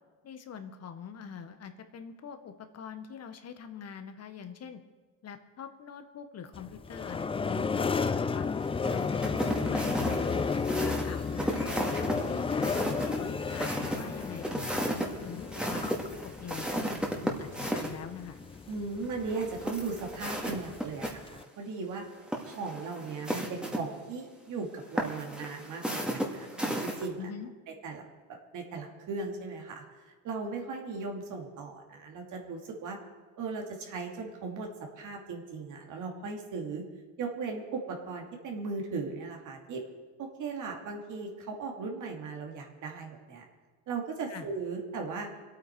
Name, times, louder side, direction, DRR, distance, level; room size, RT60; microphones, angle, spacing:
voice 1, 0.2-4.8 5.2-8.5 8.9-10.3 10.7-11.7 12.2-15.9 16.2-16.9 17.2-18.4 27.2-27.5 44.3-44.5, left 7 dB, 45° left, 8 dB, 1.7 m, -44 dB
sound 1, 6.5-21.4, left 5 dB, 15° left, 0.4 m, -33 dB
sound 2, 8.8-17.9 19.3-21.1 21.4-21.5 22.2-23.8 25.0-27.1, equal, ahead, 2.3 m, -34 dB
voice 2, 18.7-22.0 22.4-27.3 27.8-28.0 28.5-29.8 30.2-33.0 33.4-34.7 35.0-36.8 37.2-39.8 40.2-43.4 43.9-45.3, right 4 dB, 55° right, 1 dB, 2.7 m, -37 dB
25.5 x 8.9 x 4.7 m, 1.4 s
supercardioid pair, 95°, 36 cm